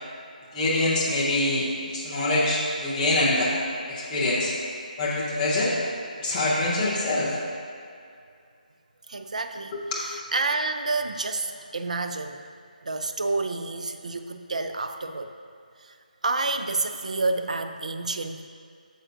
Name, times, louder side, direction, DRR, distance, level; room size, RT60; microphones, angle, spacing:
voice 1, 0.5-3.5 3.9-4.5 5.0-5.8 6.2-7.4 9.7-10.0, left 2 dB, 5° left, -7 dB, 0.5 m, -25 dB
voice 2, 9.1-9.7 10.0-12.4 12.8-15.3 15.8-15.9 16.2-18.5, right 3 dB, 50° right, 8 dB, 0.4 m, -29 dB
8.9 x 6.5 x 2.6 m, 2.3 s
figure-of-eight pair, 175°, 5 cm